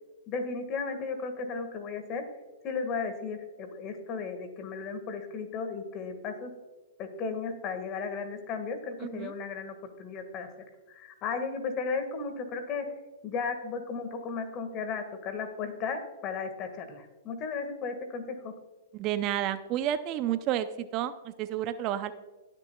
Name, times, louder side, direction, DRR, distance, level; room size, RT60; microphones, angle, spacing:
voice 1, 0.3-2.2 2.6-6.5 7.0-12.9 13.2-18.5, left 5 dB, 35° left, 7 dB, 1.7 m, -35 dB
voice 2, 9.0-9.3 18.9-22.1, right 11 dB, 40° right, 12 dB, 0.5 m, -31 dB
19.5 x 6.8 x 2.3 m, 1.2 s
hypercardioid pair, 120°, 0 cm